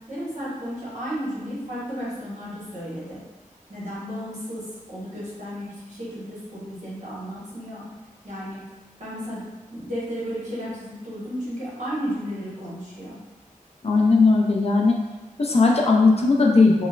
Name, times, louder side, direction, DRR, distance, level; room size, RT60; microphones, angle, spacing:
voice 1, 0.1-3.2 3.7-7.8 8.2-8.6 9.0-9.4 9.7-13.2, equal, 55° right, -9 dB, 1.2 m, -33 dB
voice 2, 13.8-15.0 15.4-16.9, left 3 dB, 45° left, -1 dB, 0.4 m, -18 dB
3.0 x 2.0 x 2.3 m, 1.1 s
wide cardioid pair, 55°, 14 cm